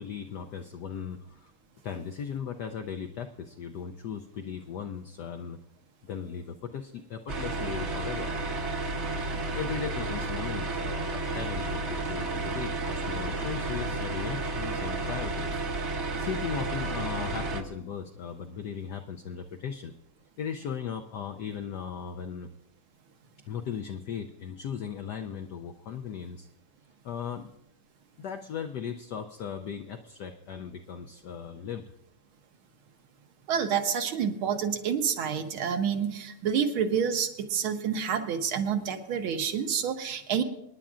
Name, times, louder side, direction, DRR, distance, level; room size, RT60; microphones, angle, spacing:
voice 1, 0.0-1.5 1.8-5.6 6.0-8.3 9.5-15.6 16.2-19.9 20.4-22.5 23.5-26.5 27.0-27.5 28.2-31.8, left 7 dB, 75° left, 6 dB, 0.9 m, -37 dB
sound 1, 7.3-17.6, right 2 dB, 50° right, 0.9 m, -32 dB
voice 2, 33.5-40.4, right 7 dB, 75° right, 6 dB, 1.8 m, -28 dB
26.0 x 10.5 x 2.5 m, 0.81 s
omnidirectional pair, 2.4 m